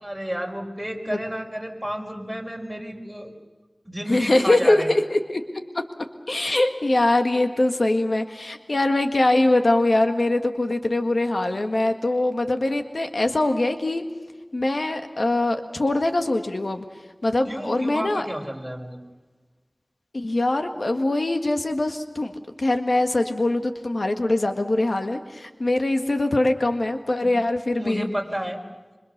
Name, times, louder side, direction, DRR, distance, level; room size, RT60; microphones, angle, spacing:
voice 1, 0.0-3.3 3.8-4.9 17.5-19.0 27.2-27.3 27.8-28.6, equal, 10° right, 1 dB, 5.2 m, -31 dB
voice 2, 4.1-5.4 6.3-14.0 14.5-16.9 17.2-18.3 20.1-22.3 22.6-28.1, left 2 dB, 80° left, 6 dB, 1.7 m, -22 dB
26.5 x 26.5 x 6.7 m, 1.3 s
wide cardioid pair, 40°, 0 cm